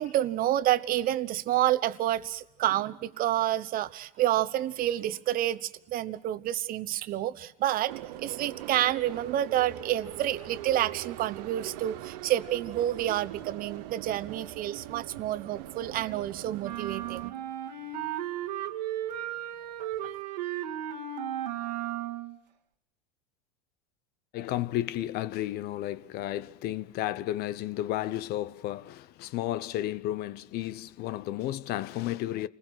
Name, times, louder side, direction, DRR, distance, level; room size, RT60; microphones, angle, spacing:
voice 1, 0.0-7.9 8.2-17.4, right 13 dB, 45° right, 1.1 m, -29 dB
sound 1, 7.9-17.3, right 14 dB, 70° right, 1.2 m, -42 dB
sound 2, 16.6-22.4, right 10 dB, 90° right, 1.9 m, -35 dB
voice 2, 24.3-32.5, left 14 dB, 50° left, 0.8 m, -32 dB
29.5 x 20.5 x 6.3 m
supercardioid pair, 105°, 21 cm